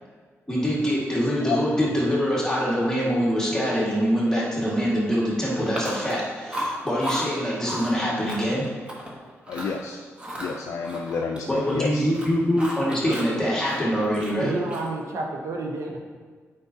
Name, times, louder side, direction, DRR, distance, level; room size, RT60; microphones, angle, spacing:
voice 1, 0.5-8.7 11.5-14.5, equal, 10° left, -6 dB, 1.8 m, -24 dB
Chewing mastication, 5.7-6.2 6.5-7.2 7.6-7.9 8.3-9.1 9.4-9.8 10.2-11.8 12.1-13.3 13.6-15.0, equal, 20° right, 1.3 m, -34 dB
voice 2, 9.5-10.0 10.4-12.1, left 5 dB, 75° left, 2 dB, 0.4 m, -30 dB
voice 3, 14.4-16.0, right 2 dB, 75° right, 1 dB, 1.0 m, -30 dB
8.1 x 5.2 x 2.8 m, 1.5 s
cardioid pair, 85°, 5 cm